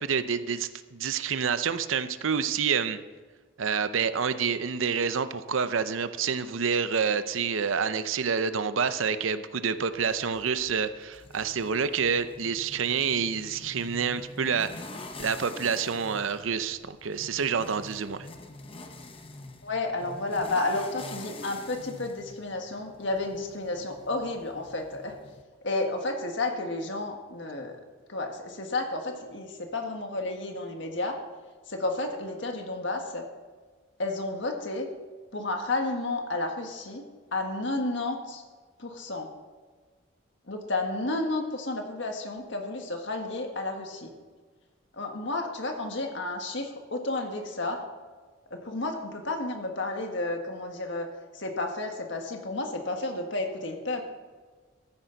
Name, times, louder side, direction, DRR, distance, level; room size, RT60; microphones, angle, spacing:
voice 1, 0.0-3.0 3.6-14.7 15.2-18.3, right 6 dB, 80° right, 12 dB, 0.6 m, -28 dB
sound 1, 9.9-25.4, left 2 dB, 25° left, 0.8 m, -46 dB
voice 2, 19.6-25.2 25.6-27.8 28.1-31.2 31.7-33.3 34.0-34.9 35.3-37.0 37.3-38.4 38.8-39.3 40.5-44.1 44.9-47.8 48.5-51.1 51.3-54.1, left 2 dB, 65° left, 3 dB, 1.7 m, -31 dB
14.0 x 10.0 x 4.0 m, 1.4 s
head